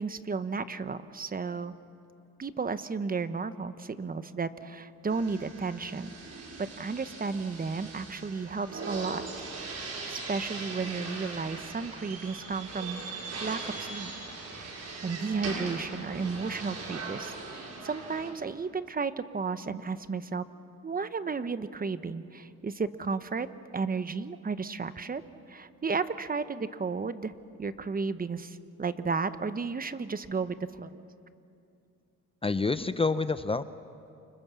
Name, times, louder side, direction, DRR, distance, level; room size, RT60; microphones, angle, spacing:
voice 1, 0.0-1.8 2.4-6.1 6.6-9.2 9.6-9.8 10.1-13.0 13.4-14.1 14.5-20.4 20.8-23.5 23.7-25.2 25.5-27.3 27.6-31.0, right 4 dB, 30° right, 12 dB, 1.1 m, -33 dB
sound 1, 5.1-18.3, right 3 dB, 55° right, 6.1 m, -40 dB
voice 2, 32.4-33.6, left 3 dB, 20° left, 12 dB, 0.7 m, -27 dB
29.0 x 25.5 x 7.1 m, 2.6 s
cardioid pair, 90°, 30 cm